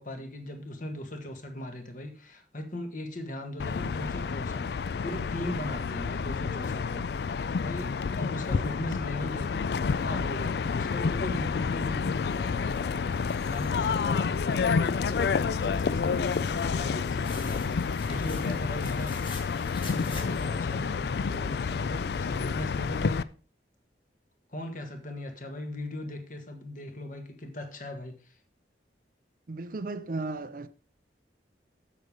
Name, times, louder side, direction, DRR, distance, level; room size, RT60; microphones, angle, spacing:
voice 1, 0.0-7.1 7.3-19.2 19.5-23.3 24.5-28.4, left 1 dB, 50° left, 1.7 m, -39 dB
sound 1, 3.6-23.2, left 5 dB, 65° left, 0.4 m, -29 dB
sound 2, 12.7-20.5, left 3 dB, 30° left, 1.8 m, -48 dB
voice 2, 29.5-30.7, right 3 dB, 50° right, 0.6 m, -35 dB
8.3 x 6.7 x 5.0 m
head